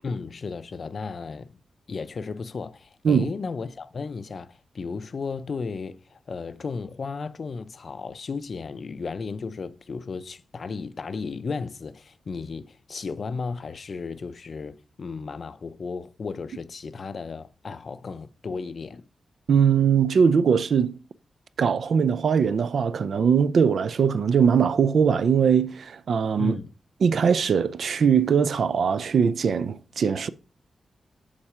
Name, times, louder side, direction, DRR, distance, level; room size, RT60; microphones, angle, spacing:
voice 1, 0.0-1.6 1.9-19.0 26.4-26.7, left 4 dB, 45° left, 0.5 m, -34 dB
voice 2, 19.5-20.9 21.6-26.6 27.0-30.3, right 6 dB, 60° right, 0.4 m, -21 dB
7.3 x 4.3 x 4.9 m
wide cardioid pair, 165°, 0 cm